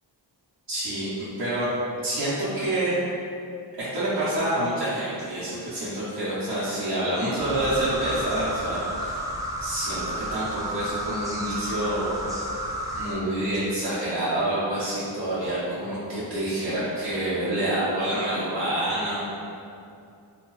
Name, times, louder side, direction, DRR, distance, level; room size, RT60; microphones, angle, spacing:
voice 1, 0.7-1.7 2.0-2.9 3.7-9.2 9.6-10.0 10.3-12.2 12.9-19.2, right 1 dB, 60° right, -12 dB, 0.8 m, -27 dB
sound 1, 7.4-13.1, right 1 dB, 10° right, 0.3 m, -32 dB
2.7 x 2.3 x 3.0 m, 2.5 s
wide cardioid pair, 85°, 46 cm